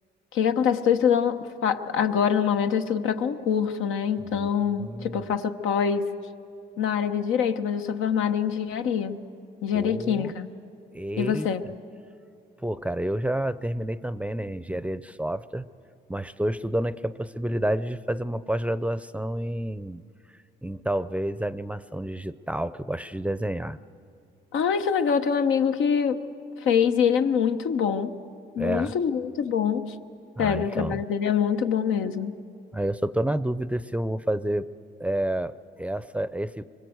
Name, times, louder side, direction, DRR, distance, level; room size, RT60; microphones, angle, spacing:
voice 1, 0.3-6.1 6.8-9.2 9.6-10.5 11.2-11.6 24.5-26.2 26.6-28.1 28.5-29.9 30.4-32.4, left 7 dB, 85° left, 7 dB, 1.1 m, -24 dB
voice 2, 4.8-5.3 9.7-10.3 10.9-11.5 12.6-15.7 16.1-20.0 20.6-23.8 28.6-28.9 30.4-31.0 32.7-34.7 35.0-36.7, right 1 dB, 5° right, 16 dB, 0.5 m, -29 dB
24.0 x 22.0 x 8.0 m, 2.4 s
cardioid pair, 90°, 20 cm